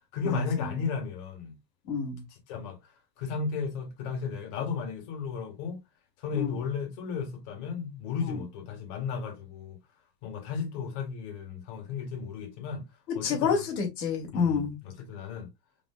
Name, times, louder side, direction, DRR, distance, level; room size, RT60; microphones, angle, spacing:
voice 1, 0.1-1.5 2.5-2.8 3.2-5.8 6.2-9.8 10.2-12.8 13.2-13.7 14.3-15.5, left 5 dB, 65° left, 2.3 m, -34 dB
voice 2, 1.9-2.2 6.3-6.5 8.2-8.4 13.1-14.8, left 6 dB, 90° left, 2.6 m, -28 dB
4.9 x 4.1 x 2.2 m
supercardioid pair, 125°, 48 cm